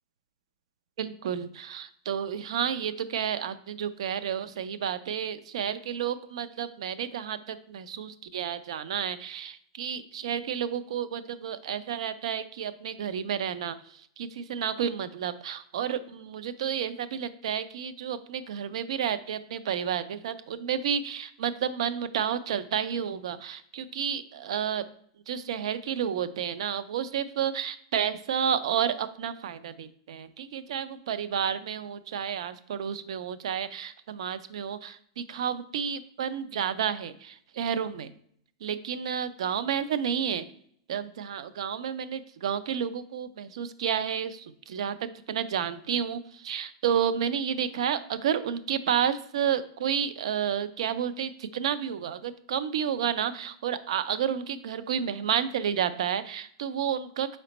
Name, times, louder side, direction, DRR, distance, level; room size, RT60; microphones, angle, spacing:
voice 1, 1.0-24.9 25.3-38.1 38.6-40.5 40.9-57.4, right 8 dB, 75° right, 14 dB, 0.4 m, -31 dB
4.1 x 4.1 x 2.9 m, 0.64 s
supercardioid pair, 155°, 3 cm